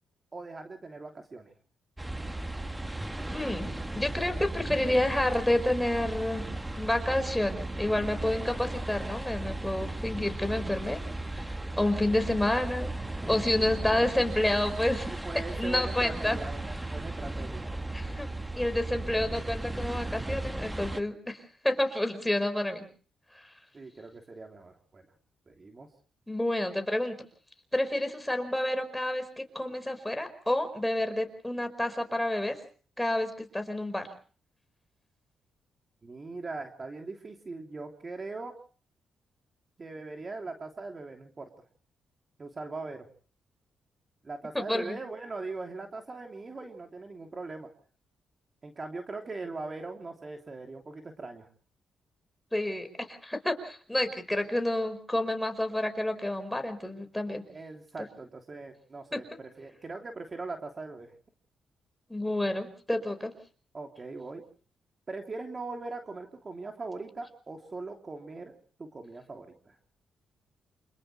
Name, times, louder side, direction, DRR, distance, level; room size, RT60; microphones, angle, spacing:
voice 1, 0.3-1.5 13.2-13.3 14.9-17.7 23.7-25.1 25.5-25.9 36.0-38.5 39.8-41.5 42.4-43.1 44.2-47.7 48.6-51.5 57.5-61.1 63.7-64.4 65.1-69.7, right 3 dB, 35° right, 3 dB, 3.1 m, -40 dB
sound 1, 2.0-21.0, right 2 dB, 10° right, 1.3 m, -36 dB
voice 2, 3.3-6.4 6.8-11.0 11.3-12.9 13.3-15.1 15.5-16.4 17.9-18.3 18.6-22.9 26.3-27.2 27.7-32.6 33.0-34.1 44.5-45.0 52.5-57.4 59.1-59.2 62.1-63.3, left 1 dB, 10° left, 7 dB, 5.0 m, -29 dB
28.5 x 27.5 x 3.3 m, 0.42 s
cardioid pair, 80°, 0 cm